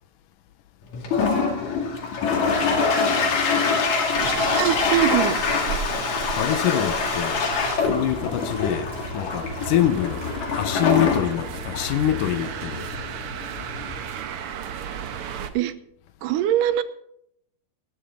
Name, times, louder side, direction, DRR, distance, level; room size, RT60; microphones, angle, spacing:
Toilet flush, 0.9-14.1, left 4 dB, 65° left, 3.5 m, -25 dB
sound 1, 4.1-15.5, right 8 dB, 65° right, 1.4 m, -35 dB
voice 1, 4.3-5.4 15.5-15.7 16.2-16.8, right 12 dB, 85° right, 2.5 m, -22 dB
voice 2, 6.4-7.5 7.8-10.2 10.5-12.9, left 11 dB, 85° left, 2.5 m, -25 dB
19.5 x 13.0 x 3.8 m
omnidirectional pair, 3.7 m